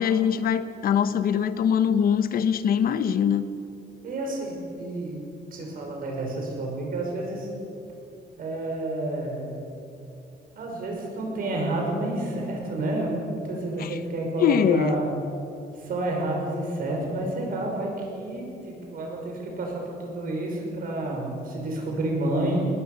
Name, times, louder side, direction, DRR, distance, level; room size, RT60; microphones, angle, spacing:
voice 1, 0.0-3.4 13.8-14.0 14.4-14.9, left 8 dB, 65° left, 12 dB, 1.0 m, -22 dB
voice 2, 4.0-7.5 8.4-9.6 10.6-15.1 15.8-22.6, right 2 dB, 60° right, 1 dB, 5.7 m, -30 dB
21.0 x 20.5 x 6.9 m, 2.7 s
wide cardioid pair, 175°, 16 cm